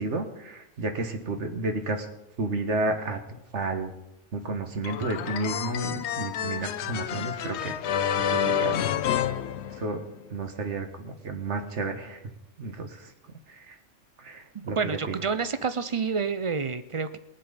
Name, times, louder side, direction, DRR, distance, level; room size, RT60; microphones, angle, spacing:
voice 1, 0.0-2.1 2.4-3.2 3.5-3.9 4.3-7.8 8.2-8.8 9.8-10.0 10.3-12.2 12.6-13.0 13.7-13.8 14.2-15.2, right 2 dB, 65° right, 6 dB, 1.7 m, -31 dB
sound 1, 4.8-10.2, left 9 dB, 65° left, 0.8 m, -29 dB
voice 2, 14.7-17.2, right 5 dB, 45° right, 12 dB, 0.4 m, -28 dB
21.0 x 7.6 x 5.1 m, 0.90 s
omnidirectional pair, 1.3 m